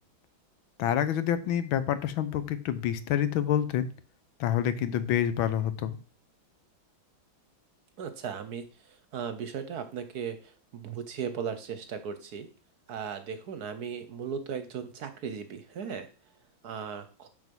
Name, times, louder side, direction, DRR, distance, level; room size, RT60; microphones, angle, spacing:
voice 1, 0.8-3.9 4.4-6.0, left 10 dB, 85° left, 12 dB, 1.6 m, -27 dB
voice 2, 8.0-12.5 12.9-16.1 16.6-17.3, right 7 dB, 60° right, 10 dB, 1.1 m, -37 dB
7.2 x 6.0 x 5.3 m, 0.37 s
omnidirectional pair, 2.2 m